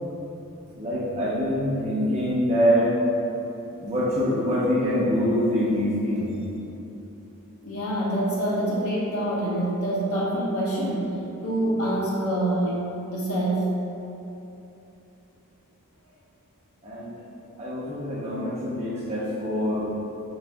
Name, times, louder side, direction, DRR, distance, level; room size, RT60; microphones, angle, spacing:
voice 1, 0.8-2.9 3.8-6.3 16.8-17.1 17.6-19.8, equal, 30° right, -7 dB, 0.9 m, -24 dB
voice 2, 7.6-11.1 11.4-12.8 13.1-13.7, right 1 dB, 70° left, -5 dB, 0.9 m, -26 dB
4.8 x 2.5 x 3.4 m, 2.9 s
head